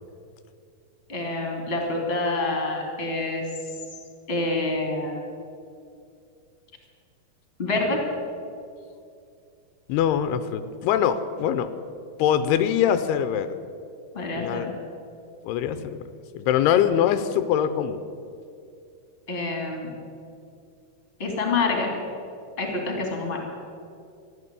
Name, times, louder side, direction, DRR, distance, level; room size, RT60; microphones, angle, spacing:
voice 1, 1.1-3.4 4.3-5.2 7.6-8.0 14.1-14.7 19.3-19.9 21.2-21.9 22.6-23.4, left 3 dB, 20° left, 1 dB, 2.3 m, -27 dB
voice 2, 9.9-11.7 12.2-13.6 14.3-14.7 15.4-15.8 16.3-18.0, left 9 dB, 85° left, 11 dB, 2.7 m, -23 dB
14.5 x 11.5 x 8.3 m, 2.4 s
omnidirectional pair, 4.6 m